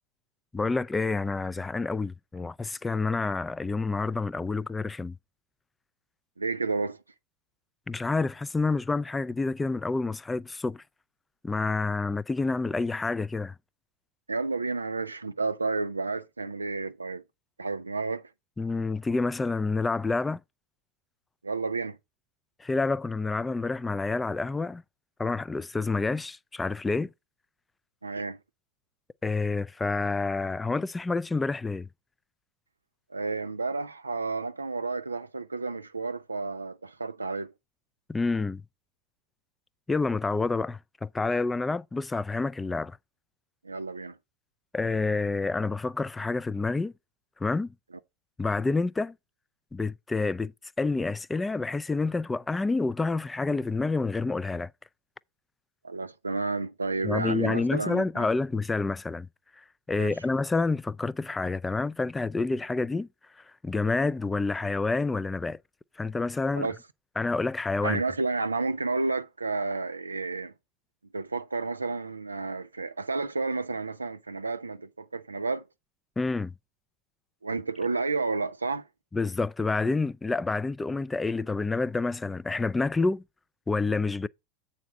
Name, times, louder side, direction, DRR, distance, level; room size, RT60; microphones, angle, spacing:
voice 1, 0.5-5.2 7.9-10.8 11.4-13.5 18.6-20.4 22.6-24.8 25.2-27.1 29.2-31.9 38.1-38.6 39.9-43.0 44.7-46.9 47.4-47.7 48.4-49.1 49.7-50.5 50.8-54.7 57.0-59.3 59.9-63.1 63.6-65.6 66.0-66.7 67.2-68.0 76.2-76.5 79.1-83.2 83.7-84.3, left 3 dB, 15° left, 0.4 m, -28 dB
voice 2, 6.4-7.0 14.3-17.2 17.6-18.3 21.4-22.0 28.0-28.4 33.1-37.5 43.6-44.2 55.8-58.3 59.9-60.1 66.5-66.8 67.8-70.5 71.1-75.7 77.4-78.9, right 3 dB, 90° right, 0.5 m, -31 dB
8.1 x 4.3 x 6.0 m
figure-of-eight pair, 80°, 0 cm